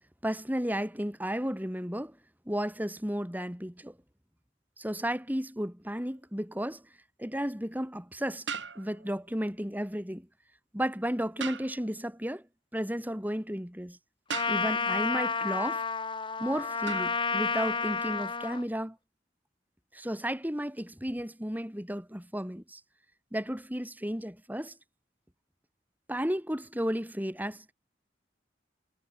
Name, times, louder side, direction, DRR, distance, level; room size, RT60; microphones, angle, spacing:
voice 1, 0.2-2.2 2.5-4.0 4.8-6.8 7.2-8.5 8.8-10.3 10.7-12.4 12.7-14.0 14.5-15.8 16.4-19.0 19.9-22.8 23.3-24.8 26.1-27.6, equal, 10° right, 7.4 m, -33 dB
sound 1, 6.0-6.2 8.5-9.3 11.4-12.0 14.3-14.9 16.9-17.3, right 6 dB, 75° right, 7.6 m, -39 dB
Trumpet, 14.3-18.6, left 4 dB, 25° left, 4.1 m, -31 dB
head